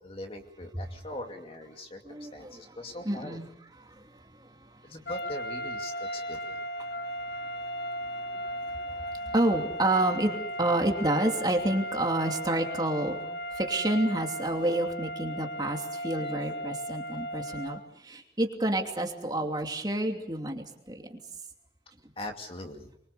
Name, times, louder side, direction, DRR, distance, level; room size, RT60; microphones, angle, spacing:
voice 1, 0.0-3.4 4.8-6.6 16.2-16.3 22.2-22.9, left 1 dB, 35° left, 4 dB, 2.5 m, -41 dB
voice 2, 2.0-2.8 3.0-3.5 3.8-4.9 6.8-21.2, right 1 dB, 25° right, 3 dB, 2.8 m, -30 dB
sound 1, 5.1-17.9, equal, 70° left, 0.9 m, -36 dB
25.0 x 23.0 x 7.0 m, 0.78 s
head